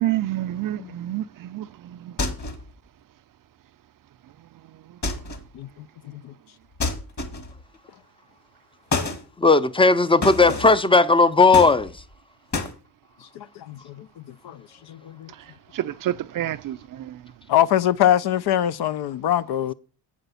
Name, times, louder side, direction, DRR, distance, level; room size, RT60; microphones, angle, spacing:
voice 1, 0.0-1.7 2.0-2.1 15.7-16.8, right 13 dB, 45° right, 0.5 m, -27 dB
sound 1, 2.2-2.7 5.0-5.5 6.8-7.6 8.9-9.2 10.2-10.8 11.5-12.1 12.5-12.8, left 3 dB, 35° left, 1.9 m, -28 dB
voice 2, 9.4-11.9, left 3 dB, 10° left, 0.6 m, -16 dB
voice 3, 13.4-14.1 14.4-14.6 14.9-15.3 17.5-19.7, left 11 dB, 55° left, 0.5 m, -23 dB
8.0 x 5.0 x 6.9 m
supercardioid pair, 65°, 48 cm